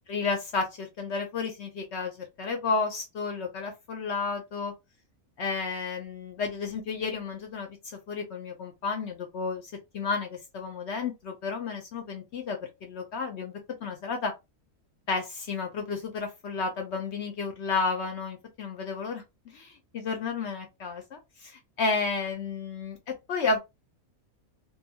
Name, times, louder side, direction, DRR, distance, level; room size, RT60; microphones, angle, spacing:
voice 1, 0.1-4.7 5.4-14.3 15.1-23.0 23.3-23.6, left 4 dB, 60° left, 0.7 m, -32 dB
2.6 x 2.3 x 2.7 m
omnidirectional pair, 1.6 m